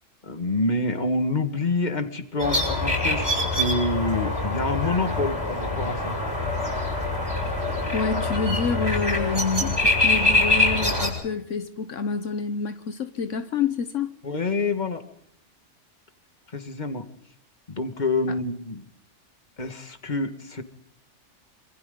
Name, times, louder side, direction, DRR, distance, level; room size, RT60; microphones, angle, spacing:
voice 1, 0.2-6.2 14.2-15.0 16.5-17.1 17.7-18.9 19.6-20.6, left 2 dB, 35° left, 2.0 m, -27 dB
sound 1, 2.4-11.1, left 2 dB, 20° right, 7.2 m, -24 dB
voice 2, 7.9-14.1, left 5 dB, 80° left, 1.5 m, -28 dB
27.5 x 26.0 x 3.9 m
omnidirectional pair, 1.3 m